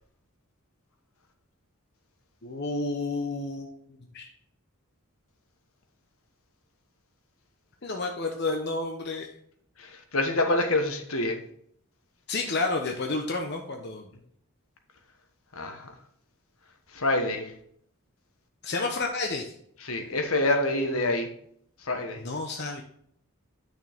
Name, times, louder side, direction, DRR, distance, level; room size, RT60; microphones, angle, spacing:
voice 1, 2.4-3.8 4.1-4.3 7.8-9.3 12.3-14.1 18.6-19.4 21.0-21.1 22.2-22.8, left 3 dB, 50° left, 3 dB, 0.9 m, -30 dB
voice 2, 9.8-11.4 15.5-15.9 16.9-17.5 19.9-21.3 21.8-22.2, left 2 dB, 75° left, 5 dB, 1.4 m, -26 dB
9.0 x 6.4 x 3.6 m, 0.67 s
head